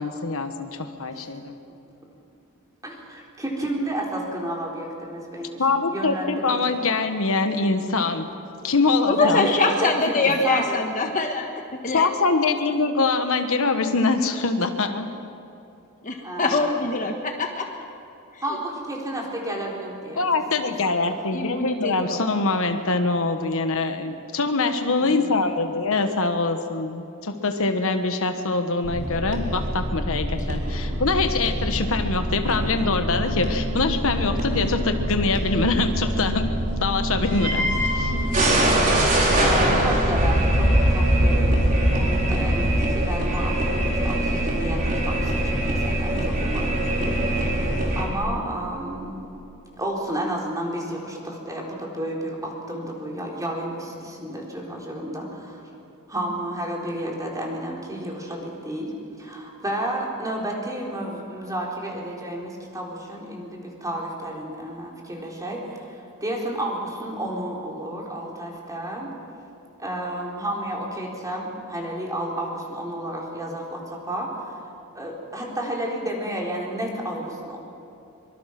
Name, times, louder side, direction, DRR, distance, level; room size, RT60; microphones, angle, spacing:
voice 1, 0.0-1.6 5.6-8.3 8.6-9.5 11.9-15.1 16.5-16.6 20.1-36.5 36.8-37.6 37.9-38.1, left 3 dB, 65° left, 7 dB, 1.3 m, -24 dB
voice 2, 2.8-5.6 5.9-6.8 9.2-10.8 16.2-16.7 18.4-20.4 20.8-21.2 25.0-25.5 38.1-38.4 39.4-49.2 49.8-55.6 56.1-69.1 69.8-74.6 74.9-77.6, right 1 dB, 15° right, -2 dB, 4.1 m, -31 dB
voice 3, 9.1-12.1 16.0-17.7 18.3-18.4 21.3-22.2, left 3 dB, 35° left, 3 dB, 1.5 m, -24 dB
sound 1, 28.8-48.0, right 1 dB, 40° right, 4.2 m, -23 dB
24.5 x 24.0 x 6.0 m, 2.7 s
head